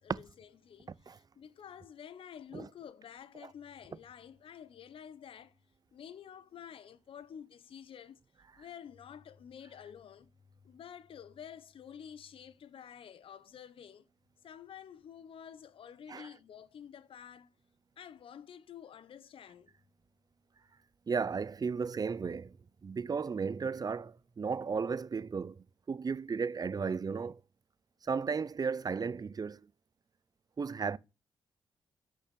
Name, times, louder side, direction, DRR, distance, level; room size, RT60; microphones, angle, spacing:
voice 1, 0.0-5.5 5.9-8.2 8.6-10.3 10.6-14.0 14.4-17.5 18.0-19.7, left 8 dB, 70° left, 1.0 m, -50 dB
voice 2, 21.1-22.5 22.8-25.5 25.9-27.4 28.1-29.6 30.6-31.0, right 5 dB, 45° right, 0.7 m, -34 dB
10.5 x 6.3 x 7.0 m
cardioid pair, 60°, 9 cm